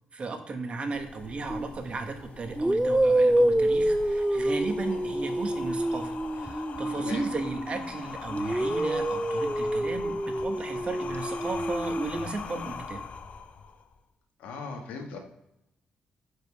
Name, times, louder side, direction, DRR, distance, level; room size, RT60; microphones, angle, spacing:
voice 1, 0.1-13.0, right 3 dB, 45° right, 5 dB, 1.3 m, -35 dB
sound 1, 0.9-13.9, left 5 dB, 55° left, 0.7 m, -41 dB
sound 2, 1.5-1.7 2.5-7.9 8.3-12.3, right 1 dB, 10° right, 0.5 m, -27 dB
voice 2, 14.4-15.2, left 4 dB, 85° left, 2 dB, 1.4 m, -38 dB
5.2 x 5.0 x 4.8 m, 0.85 s
supercardioid pair, 65°, 3 cm